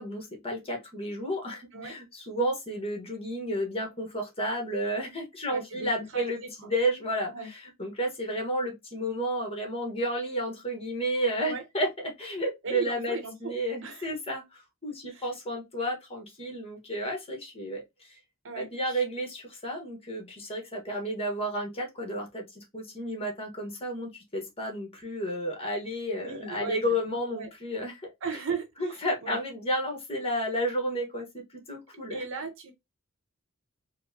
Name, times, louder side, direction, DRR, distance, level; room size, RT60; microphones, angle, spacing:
voice 1, 0.0-18.2 18.5-27.9 28.8-31.4 31.7-32.2, equal, 25° left, 1.3 m, -32 dB
voice 2, 5.5-6.7 7.3-7.5 11.4-11.6 12.6-13.5 13.8-14.1 15.1-15.3 18.4-18.7 26.2-26.9 27.3-27.5 28.2-29.4 32.1-32.7, right 4 dB, 60° right, 0.9 m, -37 dB
4.4 x 2.2 x 2.7 m
head